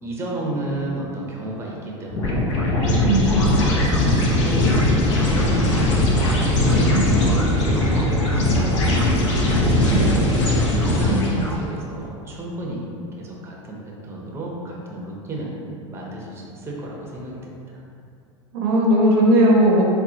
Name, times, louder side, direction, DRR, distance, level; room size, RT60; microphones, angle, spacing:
voice 1, 0.0-2.4 2.8-3.9 4.2-6.0 6.6-12.8 13.2-15.5 15.9-17.6, right 1 dB, 15° right, -3 dB, 0.6 m, -32 dB
sound 1, 2.1-11.6, left 1 dB, 70° left, 0.6 m, -19 dB
voice 2, 18.5-19.8, right 1 dB, 55° right, -2 dB, 0.6 m, -17 dB
3.8 x 2.1 x 2.8 m, 2.5 s
hypercardioid pair, 85°, 16 cm